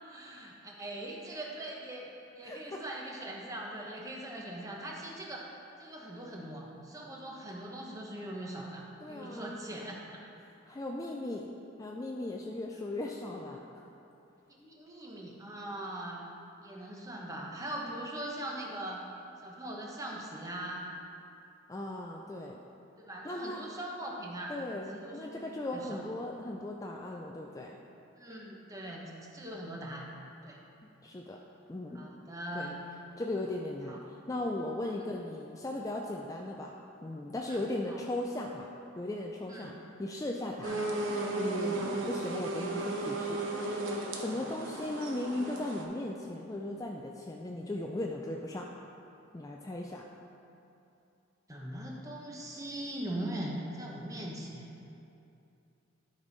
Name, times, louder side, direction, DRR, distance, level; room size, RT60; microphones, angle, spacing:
voice 1, 0.1-2.1 2.3-5.5 5.8-10.2 14.5-16.2 16.6-19.0 19.4-20.9 23.0-24.6 24.9-26.0 28.2-29.0 29.3-30.1 30.4-30.6 31.9-32.8 33.9-34.0 37.5-37.6 37.9-38.0 39.5-39.7 40.6-40.8 41.9-42.1 44.3-44.5 51.5-54.8, right 1 dB, 15° right, -2 dB, 0.9 m, -41 dB
voice 2, 2.4-2.8 9.0-9.6 10.7-11.5 11.8-13.8 21.7-22.6 23.2-23.6 24.5-27.8 31.0-31.4 31.7-32.1 32.5-32.8 33.2-36.7 37.0-38.7 39.0-39.7 40.0-40.8 41.4-48.7 49.3-50.0, left 1 dB, 15° left, 0 dB, 0.4 m, -37 dB
sound 1, 40.6-45.8, right 2 dB, 80° right, 1.0 m, -35 dB
12.0 x 5.3 x 4.1 m, 2.7 s
head